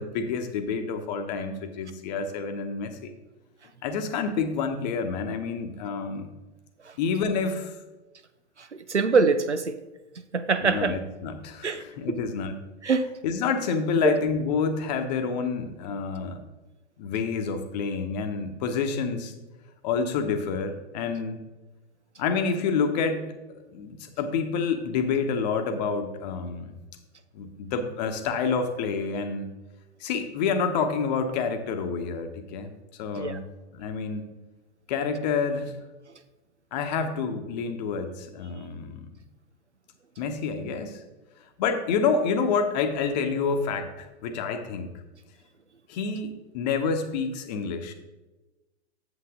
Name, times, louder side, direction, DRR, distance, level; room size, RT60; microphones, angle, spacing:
voice 1, 0.0-3.1 3.8-6.3 7.0-7.7 10.6-12.6 13.2-16.4 17.0-19.3 19.8-21.4 22.2-26.7 27.3-29.4 30.0-32.7 33.0-33.4 33.7-34.3 34.9-35.7 36.7-39.1 40.2-41.0 41.6-44.9 45.9-47.9, left 5 dB, 40° left, 7 dB, 1.0 m, -28 dB
voice 2, 8.6-9.8 10.2-11.0 11.6-11.8 12.8-13.1 14.0-14.1 33.2-33.4, right 4 dB, 90° right, 12 dB, 0.6 m, -24 dB
8.1 x 7.5 x 3.6 m, 1.1 s
figure-of-eight pair, 105°, 34 cm